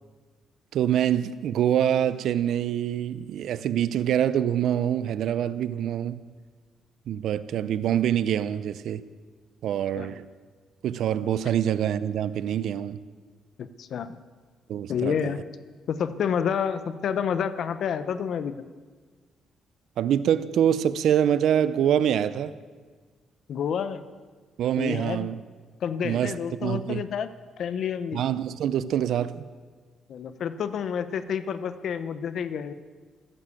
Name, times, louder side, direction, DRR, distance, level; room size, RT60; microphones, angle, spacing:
voice 1, 0.7-6.2 7.1-9.0 9.6-10.2 10.8-13.0 14.7-15.1 20.0-22.5 24.6-25.4 26.0-26.3 26.6-27.0 28.1-29.5, right 10 dB, 75° right, 0.6 m, -25 dB
voice 2, 13.6-14.2 14.9-15.4 15.9-18.6 23.5-24.0 24.8-25.3 25.8-27.3 27.6-28.2 30.1-32.7, left 7 dB, 65° left, 0.9 m, -29 dB
14.0 x 9.9 x 8.5 m
cardioid pair, 90°, 0 cm